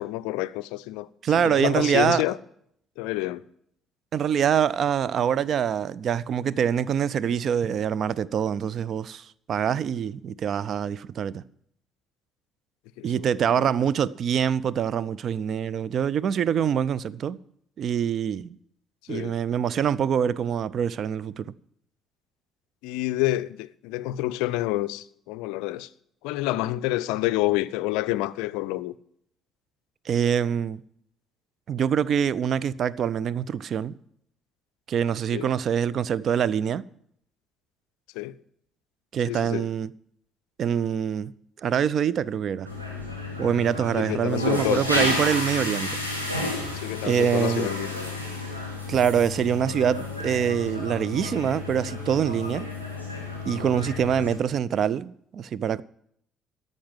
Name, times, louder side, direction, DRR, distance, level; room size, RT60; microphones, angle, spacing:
voice 1, 0.0-1.1 1.4-2.4 3.0-3.4 13.0-13.3 13.5-13.7 19.1-19.3 22.8-25.9 26.2-28.9 35.3-35.5 38.2-38.4 39.3-39.7 44.0-44.8 46.8-48.2, left 16 dB, 65° left, 0.4 m, -28 dB
voice 2, 1.2-2.2 4.1-11.4 13.0-17.4 17.8-18.6 19.1-21.5 30.1-30.8 31.7-34.0 34.9-36.9 39.1-39.9 40.6-41.3 41.6-42.7 43.4-45.9 47.0-47.7 48.9-52.7 53.4-55.8, right 8 dB, 50° right, 0.4 m, -25 dB
sound 1, 42.6-54.4, left 2 dB, 90° right, 1.6 m, -31 dB
13.0 x 5.5 x 9.1 m
figure-of-eight pair, 45°, 0 cm